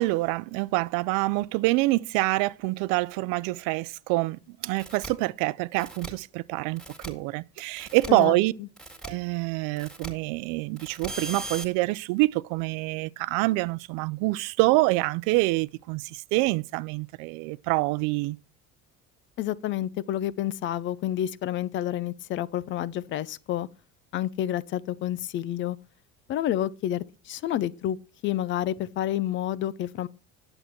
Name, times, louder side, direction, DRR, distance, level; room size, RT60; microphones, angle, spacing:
voice 1, 0.0-8.5 9.0-18.4, right 21 dB, 80° right, 0.6 m, -26 dB
sound 1, 4.8-5.1 5.8-6.1 6.8-7.1 7.8-8.1 8.8-9.1 9.8-10.1 10.8-11.6, right 2 dB, ahead, 2.0 m, -38 dB
voice 2, 8.1-8.7 19.4-23.7 24.1-25.8 26.3-28.0 28.2-30.1, left 12 dB, 40° left, 0.5 m, -29 dB
10.5 x 7.9 x 4.4 m
cardioid pair, 160°, 31 cm